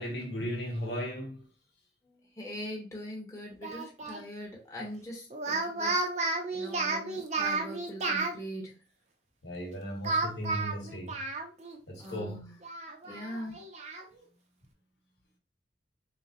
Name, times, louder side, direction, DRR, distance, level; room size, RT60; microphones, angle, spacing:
voice 1, 0.0-1.4 9.4-11.2 11.9-12.4, equal, 70° left, 1.1 m, -36 dB
voice 2, 2.0-8.7 12.0-12.6 13.0-13.6, equal, 15° left, 1.0 m, -42 dB
Speech, 3.6-4.2 5.3-8.3 10.0-11.8 12.1-12.2 12.6-14.0, right 3 dB, 40° right, 0.6 m, -32 dB
3.7 x 3.1 x 2.5 m
head